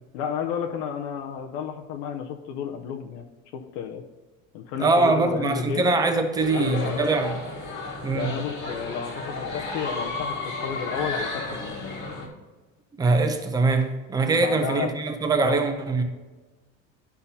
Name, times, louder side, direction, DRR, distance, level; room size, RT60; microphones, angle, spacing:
voice 1, 0.1-3.3 3.5-4.0 4.5-5.9 6.5-7.1 8.1-11.8 14.4-14.9 15.4-15.6, left 7 dB, 80° left, 0.7 m, -32 dB
voice 2, 4.8-7.3 8.0-8.4 13.0-16.0, right 3 dB, 15° right, 0.5 m, -23 dB
sound 1, 6.4-12.3, left 3 dB, 35° left, 1.3 m, -33 dB
11.5 x 5.7 x 2.7 m
cardioid pair, 175°, 30 cm